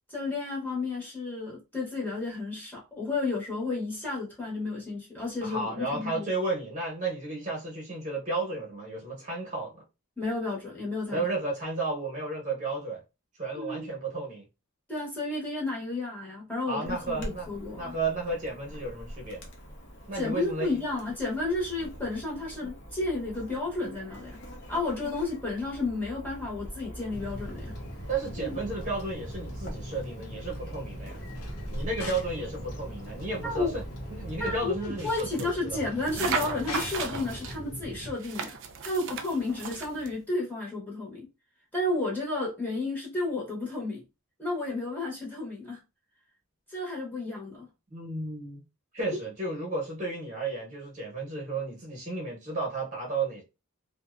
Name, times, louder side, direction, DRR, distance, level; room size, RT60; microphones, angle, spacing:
voice 1, 0.1-6.2 10.2-11.2 13.5-13.9 14.9-17.9 20.1-24.4 24.7-27.8 28.4-28.5 33.4-33.7 34.4-38.6 38.8-41.3 41.7-44.0 44.4-45.8 46.7-47.7, left 2 dB, 10° left, 0.8 m, -32 dB
voice 2, 5.4-9.8 11.1-13.0 13.4-14.5 16.7-17.5 17.8-19.5 20.1-20.8 28.1-31.2 31.7-33.8 34.1-35.8 47.3-47.4 47.9-48.6 48.9-53.4, right 3 dB, 35° right, 0.8 m, -33 dB
Chirp tweet / Buzz, 16.8-34.7, equal, 50° left, 0.6 m, -43 dB
sound 1, 27.1-38.1, left 1 dB, 90° left, 0.7 m, -41 dB
sound 2, 35.0-35.5 36.1-37.6 38.2-40.1, right 5 dB, 55° right, 0.4 m, -35 dB
2.6 x 2.1 x 2.3 m
head